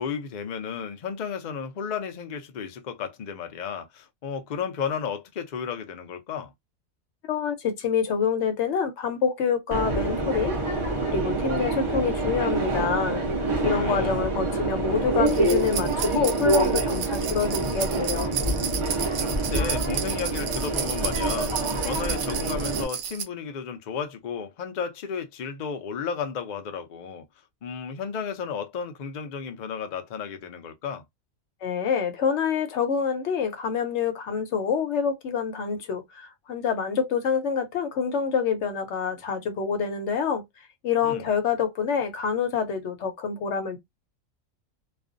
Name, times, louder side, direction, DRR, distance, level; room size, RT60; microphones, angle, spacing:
voice 1, 0.0-6.5 13.7-14.2 19.2-27.2 27.6-31.0 41.0-41.3, left 6 dB, 90° left, 0.4 m, -33 dB
voice 2, 7.3-10.6 11.0-13.2 13.6-18.3 31.6-40.4 40.8-43.8, left 6 dB, 60° left, 0.9 m, -27 dB
Subway metro underground, 9.7-22.8, right 2 dB, 35° right, 0.5 m, -26 dB
sound 1, 15.3-23.2, right 8 dB, 70° right, 0.9 m, -32 dB
2.4 x 2.2 x 2.4 m
omnidirectional pair, 1.5 m